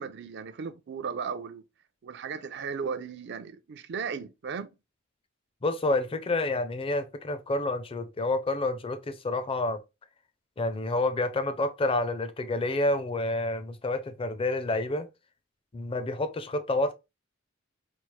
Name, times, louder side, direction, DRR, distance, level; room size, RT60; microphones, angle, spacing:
voice 1, 0.0-1.6 2.0-4.7, right 6 dB, 55° right, 0.4 m, -36 dB
voice 2, 5.6-9.8 10.6-15.1 15.7-16.9, left 2 dB, 25° left, 0.4 m, -29 dB
4.3 x 2.0 x 3.0 m
head